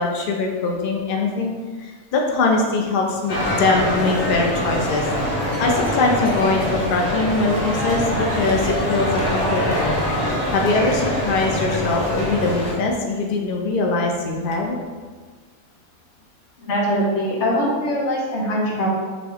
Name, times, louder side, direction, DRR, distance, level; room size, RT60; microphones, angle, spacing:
voice 1, 0.0-1.5 1.8-5.3 5.6-10.0 10.2-14.8, left 3 dB, 75° left, 1 dB, 0.5 m, -22 dB
sound 1, 3.3-12.7, left 1 dB, 40° left, 0.7 m, -23 dB
voice 2, 16.6-18.9, equal, 55° left, -3 dB, 1.1 m, -22 dB
3.9 x 3.5 x 3.3 m, 1.5 s
omnidirectional pair, 1.5 m